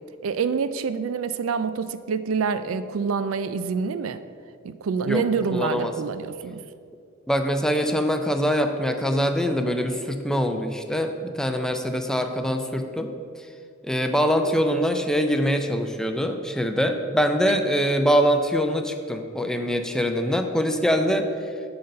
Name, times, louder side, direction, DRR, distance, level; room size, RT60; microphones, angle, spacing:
voice 1, 0.2-4.2 4.6-6.6 17.5-17.6, right 5 dB, 80° right, 13 dB, 0.4 m, -26 dB
voice 2, 5.5-5.9 7.3-13.1 13.8-21.2, equal, 5° left, 5 dB, 0.4 m, -23 dB
8.5 x 4.0 x 6.5 m, 2.3 s
head